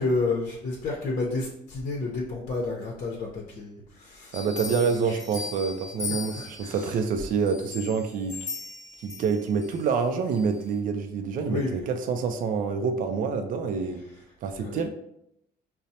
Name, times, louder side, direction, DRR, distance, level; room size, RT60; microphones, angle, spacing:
voice 1, 0.0-4.4 4.6-4.8 5.1-5.2 6.4-6.8 11.5-11.8 14.6-14.8, left 3 dB, 50° left, -2 dB, 0.6 m, -30 dB
sound 1, 4.3-6.9 7.5-9.8 10.3-10.4, left 4 dB, 15° left, 1.0 m, -38 dB
voice 2, 4.3-8.4 9.0-14.0 14.4-14.9, right 5 dB, 55° right, 6 dB, 0.4 m, -27 dB
5.1 x 2.0 x 2.8 m, 0.80 s
cardioid pair, 110°, 17 cm